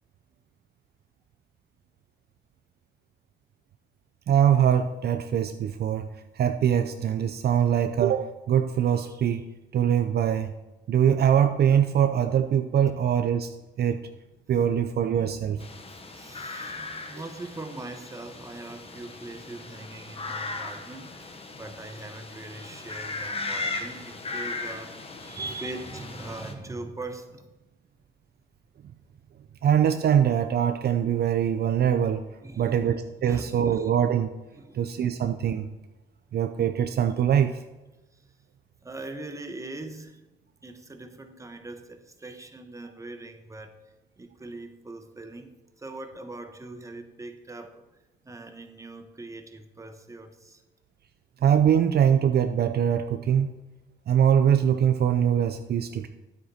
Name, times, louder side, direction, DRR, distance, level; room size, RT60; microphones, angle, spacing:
voice 1, 4.3-6.1 6.3-9.4 9.7-10.5 10.9-14.0 14.5-15.6 25.3-25.7 29.6-32.2 32.6-34.3 34.7-35.7 36.3-37.6 51.4-53.5 54.1-56.1, right 9 dB, 55° right, 8 dB, 0.5 m, -23 dB
sound 1, 15.6-26.5, left 3 dB, 30° left, 1.2 m, -37 dB
voice 2, 15.9-25.0 25.3-27.5 32.4-32.8 33.2-33.9 34.5-34.9 38.1-38.3 38.8-40.2 40.6-43.8 44.2-47.8 48.2-50.6, right 2 dB, 15° right, 6 dB, 1.1 m, -41 dB
9.4 x 8.0 x 4.3 m, 1.1 s
cardioid pair, 90°, 20 cm